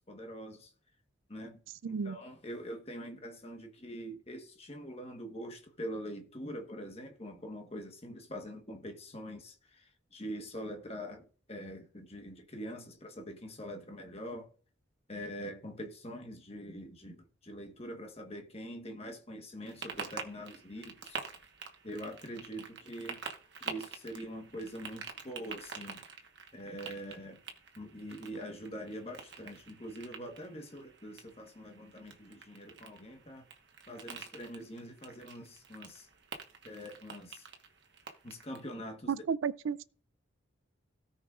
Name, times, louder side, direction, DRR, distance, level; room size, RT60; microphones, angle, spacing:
voice 1, 0.1-0.7 1.3-1.6 1.9-14.5 15.1-21.2 21.8-23.2 23.6-26.0 26.5-27.4 27.7-33.5 33.9-36.1 36.6-37.5 38.2-39.2, equal, 30° left, 1.3 m, -44 dB
voice 2, 1.8-2.2 39.1-39.8, right 6 dB, 85° right, 0.4 m, -33 dB
sound 1, 19.6-38.7, right 5 dB, 60° right, 1.2 m, -47 dB
17.0 x 5.7 x 2.4 m
head